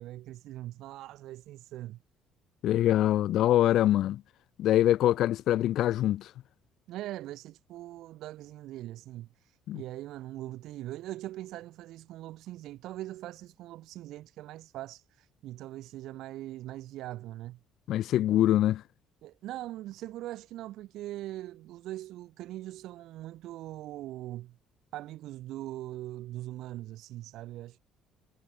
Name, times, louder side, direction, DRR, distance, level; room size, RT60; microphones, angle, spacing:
voice 1, 0.0-2.0 6.9-17.6 19.2-24.6 24.9-27.8, right 15 dB, 70° right, 2.6 m, -41 dB
voice 2, 2.6-4.2 4.6-6.3 9.7-9.8 17.9-18.8, left 13 dB, 65° left, 1.4 m, -24 dB
supercardioid pair, 90°, 0 cm